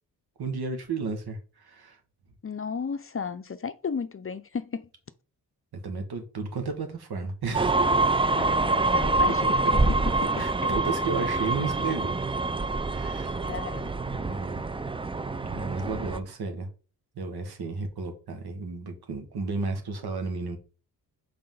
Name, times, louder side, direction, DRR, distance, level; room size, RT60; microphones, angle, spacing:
voice 1, 0.4-2.0 5.8-7.8 9.6-9.7 10.4-12.2 12.8-13.4 14.1-14.6 15.4-16.7 17.2-20.6, right 4 dB, 65° right, 1.9 m, -33 dB
voice 2, 2.4-4.9 8.3-10.4 13.4-13.9, left 6 dB, 30° left, 0.6 m, -34 dB
sound 1, 7.5-16.2, right 2 dB, 15° right, 0.5 m, -26 dB
5.4 x 4.3 x 5.5 m
cardioid pair, 55°, 41 cm